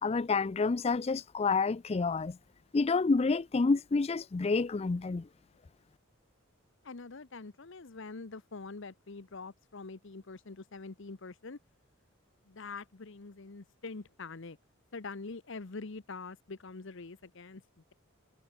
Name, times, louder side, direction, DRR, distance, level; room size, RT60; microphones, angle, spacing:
voice 1, 0.0-2.4 2.7-5.3, left 4 dB, 30° left, 0.4 m, -29 dB
voice 2, 6.8-11.6 12.5-14.6 14.9-17.6, left 4 dB, 60° left, 0.9 m, -44 dB
head